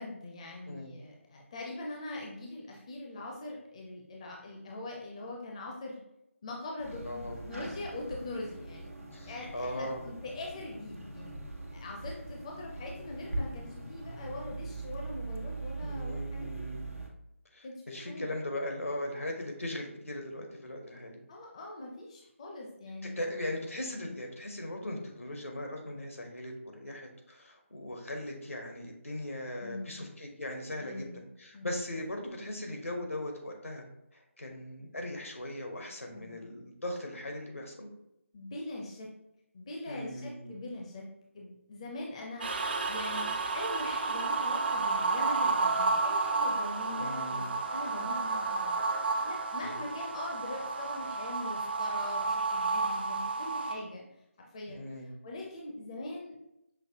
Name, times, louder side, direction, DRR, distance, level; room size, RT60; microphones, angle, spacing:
voice 1, 0.0-6.0 6.4-8.9 9.3-11.3 11.7-16.6 17.6-18.4 21.3-23.2 29.6-30.0 30.8-31.3 31.5-31.8 36.1-36.5 38.3-39.1 39.5-41.1 41.3-48.8 49.2-54.0 54.4-56.4, left 2 dB, 25° left, -1 dB, 0.5 m, -42 dB
sound 1, 6.8-17.1, right 2 dB, 90° right, 1.0 m, -41 dB
voice 2, 7.0-7.4 9.1-10.0 15.8-16.9 17.5-21.2 23.0-31.1 31.4-33.8 34.1-37.9 39.9-40.5 46.9-47.5 49.6-49.7 54.7-55.1, left 1 dB, 75° left, 2 dB, 1.1 m, -39 dB
sound 2, 42.4-53.7, right 3 dB, 45° right, 0.5 m, -31 dB
5.8 x 2.7 x 2.8 m, 0.83 s
figure-of-eight pair, 155°, 7 cm